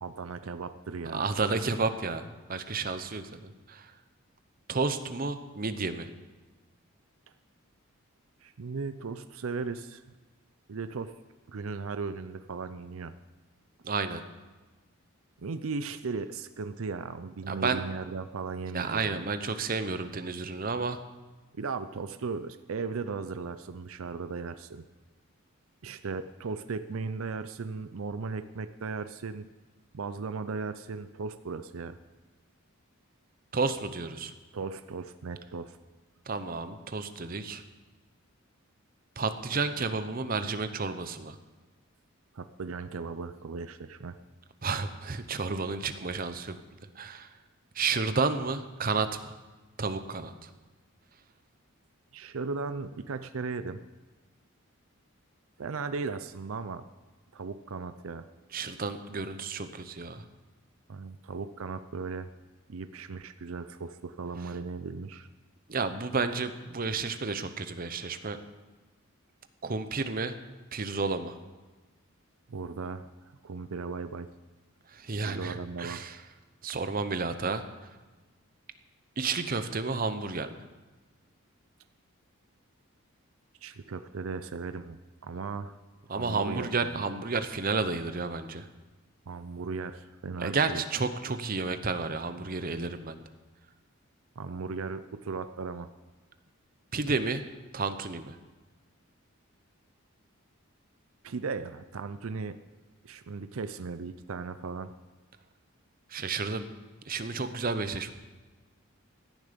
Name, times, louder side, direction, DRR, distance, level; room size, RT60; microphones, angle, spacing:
voice 1, 0.0-1.2 8.4-10.0 10.7-11.1 11.5-13.1 15.4-19.3 21.6-24.8 25.8-29.5 29.9-32.0 34.5-35.8 42.3-44.2 52.1-53.8 55.6-56.9 57.3-58.2 60.9-62.3 62.7-65.3 72.5-74.3 75.2-76.0 83.6-85.8 86.2-87.0 89.3-90.8 94.4-95.9 101.2-102.6 103.0-104.9, right 4 dB, 70° right, 11 dB, 0.5 m, -37 dB
voice 2, 1.1-3.9 4.7-6.1 13.8-14.2 17.5-17.8 18.7-21.0 33.5-34.3 36.3-37.6 39.2-41.4 44.6-46.6 47.0-47.3 47.7-49.3 49.8-50.5 58.5-60.2 65.7-68.4 69.6-70.4 70.7-71.4 74.9-76.2 76.6-77.9 79.2-80.5 86.1-88.7 90.4-93.2 96.9-97.4 97.7-98.4 106.1-106.6 107.1-108.1, right 4 dB, 40° right, 10 dB, 0.8 m, -31 dB
16.5 x 11.0 x 5.2 m, 1.2 s
head